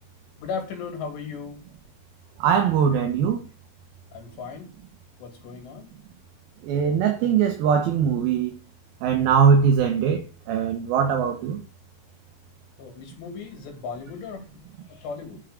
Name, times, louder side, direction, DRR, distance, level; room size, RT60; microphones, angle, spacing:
voice 1, 0.4-1.6 4.1-4.7 5.2-5.9 12.8-15.4, left 5 dB, 80° left, 4.4 m, -36 dB
voice 2, 2.4-3.4 6.6-8.5 9.0-11.6, right 7 dB, 70° right, 2.7 m, -21 dB
9.5 x 5.5 x 5.1 m
omnidirectional pair, 4.9 m